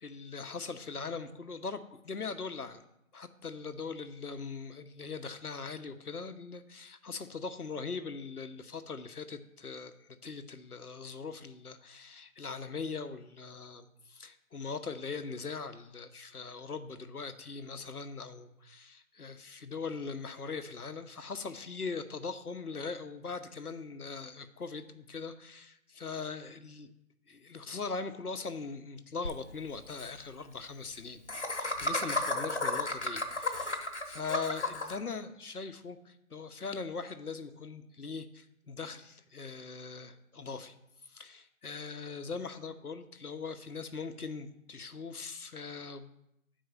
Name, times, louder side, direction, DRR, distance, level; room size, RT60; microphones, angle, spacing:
voice 1, 0.0-2.8 3.1-26.9 27.3-40.7 41.1-46.1, left 4 dB, 85° left, 9 dB, 1.0 m, -41 dB
Laughter, 29.2-29.3 29.6-29.7 29.9-30.1 31.3-35.0, left 2 dB, 50° left, 1.2 m, -33 dB
9.1 x 4.6 x 5.9 m, 0.82 s
figure-of-eight pair, 175°, 44 cm